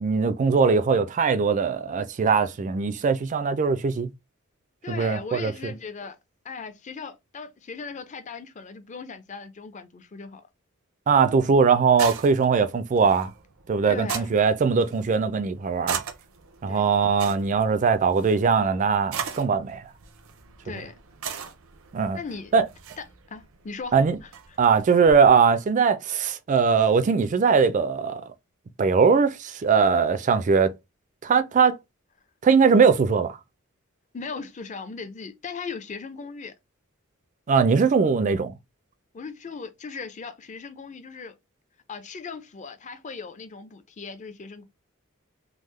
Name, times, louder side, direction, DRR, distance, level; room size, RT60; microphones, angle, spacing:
voice 1, 0.0-4.1 4.9-5.7 11.1-13.3 13.7-16.0 16.6-19.8 21.9-22.2 22.5-22.6 23.9-24.2 24.6-28.3 28.8-30.7 31.2-31.8 32.4-33.4 37.5-38.5, right 5 dB, 35° right, 0.3 m, -21 dB
voice 2, 4.8-6.2 6.4-10.4 13.9-14.4 16.7-16.9 20.6-21.0 22.1-22.5 23.0-24.0 24.2-24.3 34.1-36.5 39.1-41.4 41.9-44.6, left 5 dB, 35° left, 0.5 m, -38 dB
sound 1, 11.1-25.3, right 7 dB, 80° right, 0.6 m, -39 dB
3.5 x 2.0 x 3.1 m
head